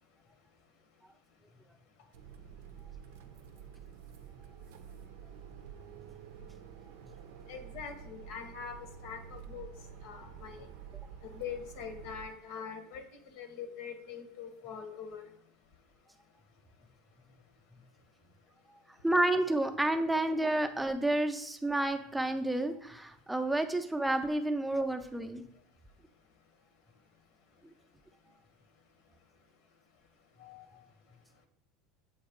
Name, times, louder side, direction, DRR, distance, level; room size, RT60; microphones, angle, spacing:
sound 1, 2.1-12.3, right 8 dB, 85° right, 0.5 m, -49 dB
voice 1, 7.5-9.7 10.0-10.7 11.2-13.0 13.3-15.3 30.4-30.6, left 7 dB, 65° left, 7 dB, 1.0 m, -43 dB
voice 2, 19.0-25.4, right 1 dB, 5° right, 5 dB, 0.5 m, -30 dB
7.2 x 2.9 x 4.9 m, 0.69 s
supercardioid pair, 145°, 0 cm